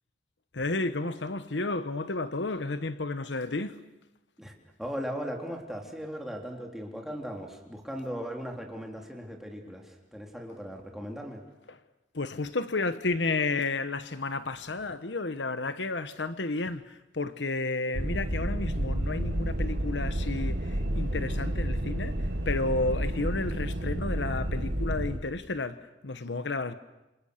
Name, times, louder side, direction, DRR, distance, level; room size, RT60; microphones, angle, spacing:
voice 1, 0.5-3.9 12.1-22.2 22.4-26.7, left 3 dB, 80° left, 1.2 m, -32 dB
voice 2, 4.8-11.4, equal, ahead, 3.5 m, -38 dB
sound 1, 17.9-25.2, right 1 dB, 70° right, 2.0 m, -30 dB
28.5 x 27.5 x 6.7 m
head